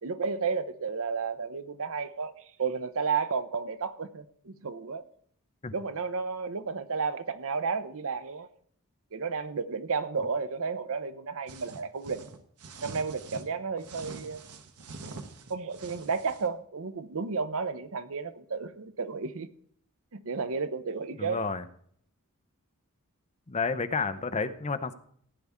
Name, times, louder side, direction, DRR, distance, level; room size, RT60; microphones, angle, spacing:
voice 1, 0.0-2.3 2.6-5.0 5.7-8.5 9.1-12.2 12.8-14.4 15.5-19.5 20.1-21.4, right 5 dB, 65° right, 0.7 m, -32 dB
sound 1, 11.5-13.5 13.8-16.5, right 3 dB, 85° right, 1.2 m, -45 dB
voice 2, 21.2-21.6 23.5-24.9, left 4 dB, 30° left, 0.7 m, -30 dB
15.5 x 9.5 x 3.6 m
head